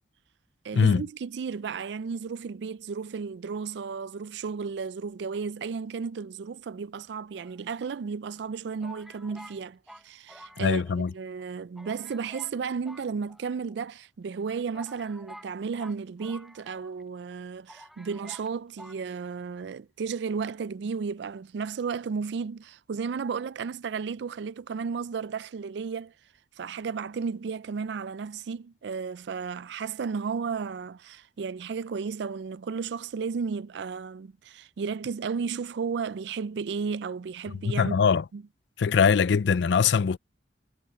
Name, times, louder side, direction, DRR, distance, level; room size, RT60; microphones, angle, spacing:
voice 1, 0.6-9.8 10.0-10.8 11.1-26.1 26.6-38.0 38.3-38.4, right 5 dB, 65° right, 0.4 m, -33 dB
sound 1, 7.4-8.1 8.8-11.1 11.4-11.5 11.8-12.6 12.8-13.8 14.4-14.5 14.7-17.0 17.3-17.4 17.7-18.5 18.8-19.0, equal, ahead, 1.0 m, -49 dB
voice 2, 10.6-11.1 37.6-38.2 38.8-40.2, left 6 dB, 70° left, 0.4 m, -22 dB
head